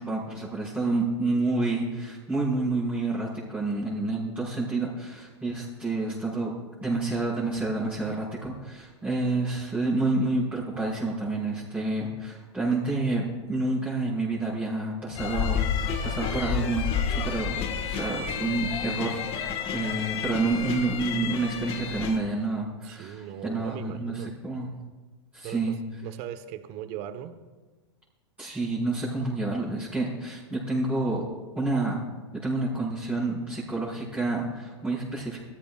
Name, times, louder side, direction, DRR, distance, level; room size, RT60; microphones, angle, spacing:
voice 1, 0.0-6.5 6.8-24.7 25.3-25.7 28.4-31.2 31.5-32.0 32.4-35.4, right 2 dB, 10° right, -9 dB, 5.6 m, -29 dB
sound 1, 15.1-22.2, left 7 dB, 40° left, 1.8 m, -30 dB
voice 2, 22.8-24.3 25.4-27.4, right 10 dB, 45° right, 10 dB, 1.3 m, -39 dB
23.0 x 15.0 x 2.5 m, 1.3 s
hypercardioid pair, 105°, 15 cm